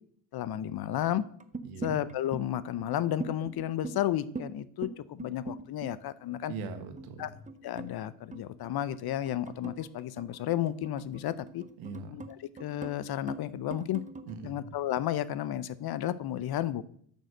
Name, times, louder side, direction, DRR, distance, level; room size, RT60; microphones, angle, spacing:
voice 1, 0.3-1.2 1.8-6.5 7.2-7.3 7.6-11.6 12.1-12.2 12.6-14.0 14.4-16.8, left 12 dB, 50° left, 17 dB, 0.7 m, -32 dB
sound 1, 1.4-2.4 2.8-2.9 3.2-4.5 4.8-6.4 6.7-13.0 13.3-14.4, right 4 dB, 15° right, 0.7 m, -42 dB
voice 2, 1.6-1.9 6.5-7.3 11.8-12.2 14.3-14.7, right 4 dB, 80° right, 7 dB, 1.5 m, -41 dB
6.6 x 6.4 x 6.5 m, 0.63 s
supercardioid pair, 80°, 49 cm